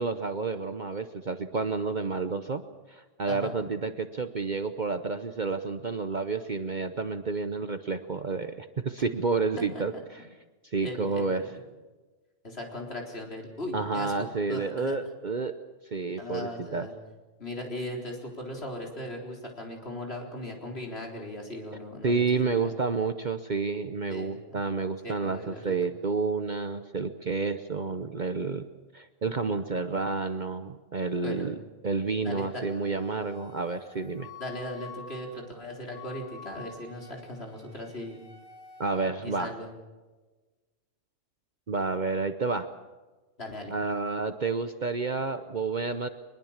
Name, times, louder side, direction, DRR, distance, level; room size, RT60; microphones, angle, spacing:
voice 1, 0.0-2.6 2.9-9.9 10.6-11.4 13.7-15.5 15.9-16.9 22.0-28.6 28.9-31.6 31.8-34.3 38.8-39.5 41.7-42.7 43.7-46.1, right 4 dB, 40° right, 9 dB, 0.9 m, -30 dB
voice 2, 10.8-11.3 12.4-14.9 16.2-16.9 17.4-22.7 24.1-24.6 25.0-25.8 31.2-31.5 32.2-32.6 34.4-38.2 39.2-39.7 43.4-43.7, left 1 dB, 50° left, 1 dB, 4.3 m, -38 dB
Wind instrument woodwind instrument, 32.3-39.1, left 5 dB, 80° left, 2.7 m, -49 dB
23.0 x 21.5 x 7.3 m, 1.3 s
omnidirectional pair, 1.3 m